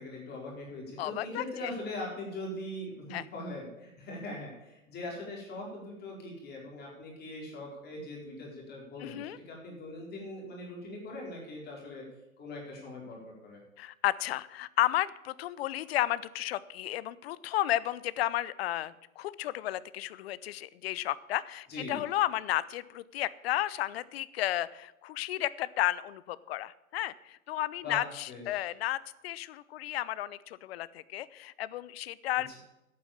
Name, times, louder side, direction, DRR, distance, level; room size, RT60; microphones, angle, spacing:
voice 1, 0.0-12.0 12.4-13.6 21.7-22.0 27.8-28.0 28.3-28.7, left 2 dB, 25° left, -2 dB, 4.4 m, -41 dB
voice 2, 1.0-1.4 3.1-3.2 9.0-9.4 13.8-29.0 29.2-32.6, left 14 dB, 45° left, 18 dB, 0.7 m, -33 dB
11.0 x 8.8 x 7.2 m, 0.96 s
hypercardioid pair, 120°, 41 cm